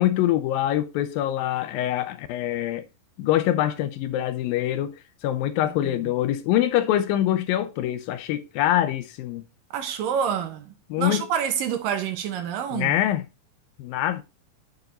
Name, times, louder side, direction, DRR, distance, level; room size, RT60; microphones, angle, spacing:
voice 1, 0.0-2.8 3.2-5.0 5.2-9.4 10.9-11.3 12.7-13.2 13.8-14.2, left 12 dB, 80° left, 2.3 m, -24 dB
voice 2, 9.7-13.0, right 8 dB, 75° right, 2.4 m, -28 dB
7.9 x 4.8 x 4.2 m
omnidirectional pair, 4.4 m